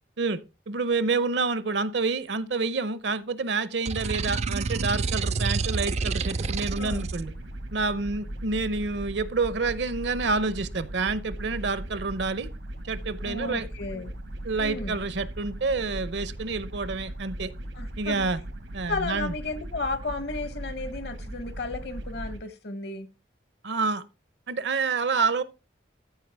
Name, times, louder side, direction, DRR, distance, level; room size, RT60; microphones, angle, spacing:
voice 1, 0.7-7.3 7.7-12.5 12.8-13.7 14.4-17.5 18.0-18.4 18.7-19.3 23.6-24.0 24.5-25.4, right 4 dB, 70° right, 0.7 m, -28 dB
sound 1, 3.8-7.2, right 4 dB, 35° right, 0.3 m, -28 dB
sound 2, 4.7-22.4, right 1 dB, 85° right, 1.2 m, -38 dB
voice 2, 13.2-14.1 14.6-15.0 17.7-18.3 18.9-23.1, left 3 dB, 60° left, 1.0 m, -33 dB
14.0 x 4.8 x 3.4 m
head